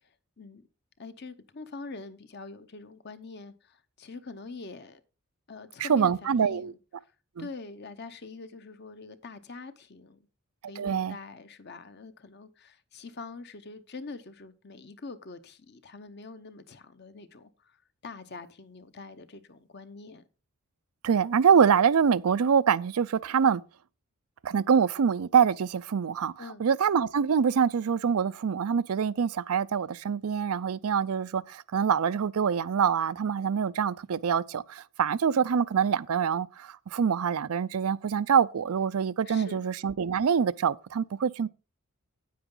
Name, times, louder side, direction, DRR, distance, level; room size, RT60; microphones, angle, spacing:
voice 1, 1.0-5.0 5.5-6.8 7.4-10.2 10.7-20.2 26.4-26.6 39.2-39.6, left 3 dB, 50° left, 0.9 m, -44 dB
voice 2, 5.8-6.7 7.4-7.5 10.8-11.2 21.0-23.6 24.4-26.3 26.6-41.5, right 7 dB, 85° right, 0.5 m, -25 dB
9.4 x 8.8 x 3.8 m
head